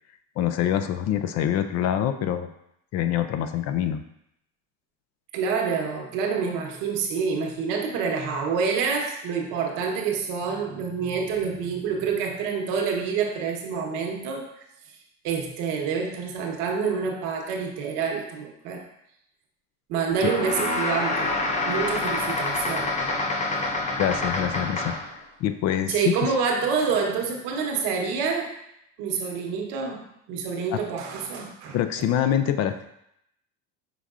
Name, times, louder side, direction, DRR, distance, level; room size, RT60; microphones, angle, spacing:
voice 1, 0.4-2.5 2.9-4.0 20.2-20.3 23.9-26.1 30.7-30.8 31.7-32.8, left 10 dB, 50° left, 9 dB, 0.4 m, -25 dB
voice 2, 5.3-14.5 15.2-18.8 19.9-23.0 25.9-28.5 29.0-30.0 30.3-32.1, right 5 dB, 75° right, 1 dB, 1.0 m, -27 dB
sound 1, 20.2-25.1, left 2 dB, 20° left, 0.7 m, -27 dB
5.7 x 3.5 x 2.4 m, 0.78 s
supercardioid pair, 95°, 35 cm